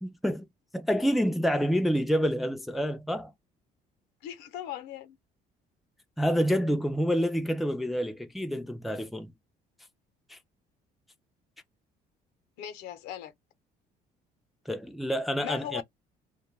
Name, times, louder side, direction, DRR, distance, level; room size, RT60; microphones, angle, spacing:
voice 1, 0.0-0.5 0.7-3.3 6.2-9.3 10.3-10.4 14.7-15.8, equal, ahead, 0.3 m, -28 dB
voice 2, 4.2-5.2 12.6-13.3 15.4-15.8, left 11 dB, 90° left, 0.6 m, -38 dB
2.2 x 2.2 x 3.1 m
cardioid pair, 110°, 17 cm